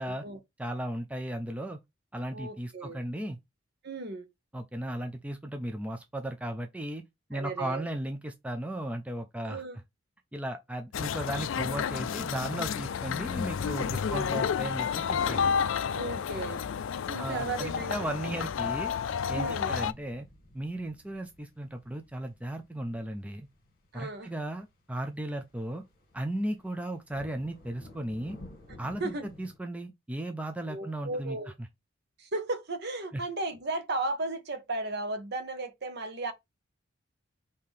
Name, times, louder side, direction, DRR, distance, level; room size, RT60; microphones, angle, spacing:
voice 1, 0.0-0.4 2.3-3.0 3.8-4.3 7.3-7.8 9.4-9.8 14.1-14.3 15.9-16.6 17.1-18.1 19.3-19.7 23.9-24.3 29.0-29.3 30.7-31.5 32.2-36.3, right 2 dB, 50° right, 0.9 m, -35 dB
voice 2, 0.6-1.8 2.1-3.4 4.5-7.0 7.3-9.6 10.3-15.4 17.2-18.9 19.3-20.3 20.5-23.5 23.9-25.8 26.1-28.4 28.8-31.4 33.1-33.2, right 1 dB, 5° right, 0.4 m, -36 dB
sound 1, 10.9-19.9, left 7 dB, 65° left, 0.4 m, -31 dB
sound 2, 17.9-29.6, left 1 dB, 45° left, 1.7 m, -55 dB
5.4 x 2.8 x 3.3 m
head